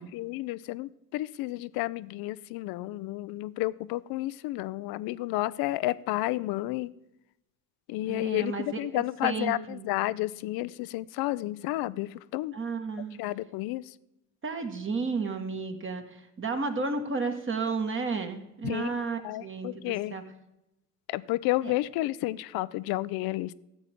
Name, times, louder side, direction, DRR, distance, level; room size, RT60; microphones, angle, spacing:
voice 1, 0.0-6.9 7.9-12.5 13.2-13.8 18.6-18.9 19.2-20.2 21.1-23.5, left 17 dB, 50° left, 18 dB, 0.6 m, -31 dB
voice 2, 8.0-9.9 12.5-13.2 14.4-20.2 21.6-21.7, right 4 dB, 25° right, 5 dB, 1.7 m, -33 dB
14.0 x 8.1 x 3.6 m, 0.89 s
hypercardioid pair, 75°, 46 cm